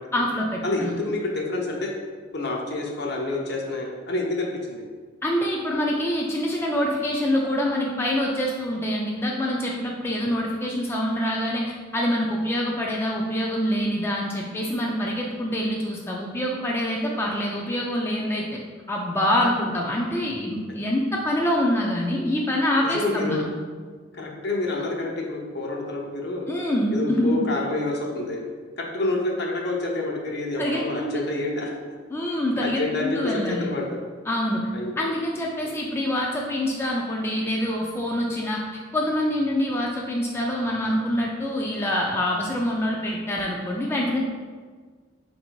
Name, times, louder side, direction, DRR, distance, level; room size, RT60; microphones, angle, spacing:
voice 1, 0.1-0.9 5.2-18.6 18.9-23.4 26.5-27.4 30.6-31.2 32.1-33.7 34.3-34.7 35.0-38.6 38.9-44.2, left 1 dB, 15° left, -2 dB, 0.3 m, -25 dB
voice 2, 0.6-1.9 2.3-4.8 22.8-23.4 24.1-26.5 26.9-28.4 28.8-31.7 32.6-34.0 34.7-34.9, left 2 dB, 60° left, 0 dB, 0.7 m, -28 dB
4.1 x 2.6 x 4.5 m, 1.5 s
head